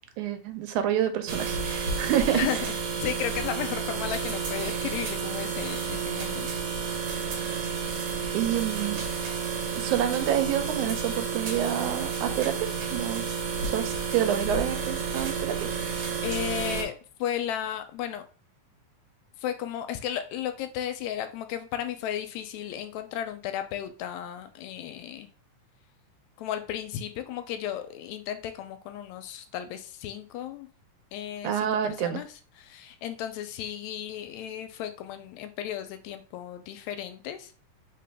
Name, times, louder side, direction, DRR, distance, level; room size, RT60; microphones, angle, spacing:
voice 1, 0.2-2.7 8.3-9.0 9.7-13.3 13.6-15.7 31.4-32.2, right 10 dB, 85° right, 9 dB, 2.0 m, -28 dB
sound 1, 1.3-16.8, right 5 dB, 65° right, 1.4 m, -31 dB
voice 2, 2.3-7.0 16.2-18.3 19.4-25.3 26.4-30.7 31.1-37.6, left 10 dB, 80° left, 8 dB, 1.7 m, -34 dB
3.9 x 3.8 x 3.4 m, 0.39 s
omnidirectional pair, 3.4 m